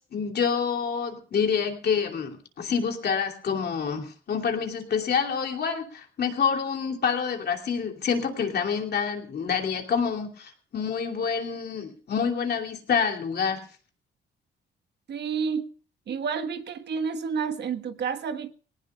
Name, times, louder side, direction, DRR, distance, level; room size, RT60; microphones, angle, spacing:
voice 1, 0.1-13.6, left 6 dB, 55° left, 3 dB, 2.9 m, -27 dB
voice 2, 15.1-15.7 16.1-18.5, right 6 dB, 60° right, 7 dB, 1.3 m, -30 dB
19.5 x 18.0 x 2.3 m, 0.40 s
cardioid pair, 90°, 20 cm